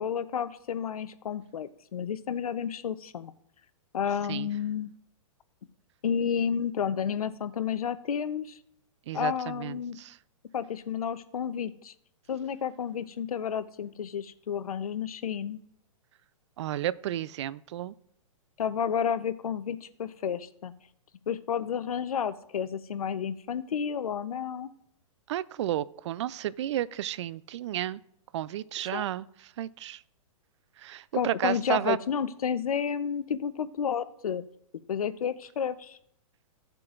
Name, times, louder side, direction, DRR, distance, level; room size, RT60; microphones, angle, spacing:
voice 1, 0.0-3.3 3.9-4.9 6.0-8.6 9.1-10.0 10.5-11.9 12.3-15.6 18.6-20.7 21.3-24.7 28.8-29.1 31.1-34.4 34.9-36.0, left 7 dB, 90° left, 13 dB, 0.7 m, -31 dB
voice 2, 9.1-10.1 16.6-17.9 25.3-28.0 28.3-29.3 29.6-30.0 30.8-32.0, right 12 dB, 55° right, 19 dB, 0.4 m, -32 dB
16.0 x 7.7 x 2.5 m, 0.72 s
hypercardioid pair, 145°, 18 cm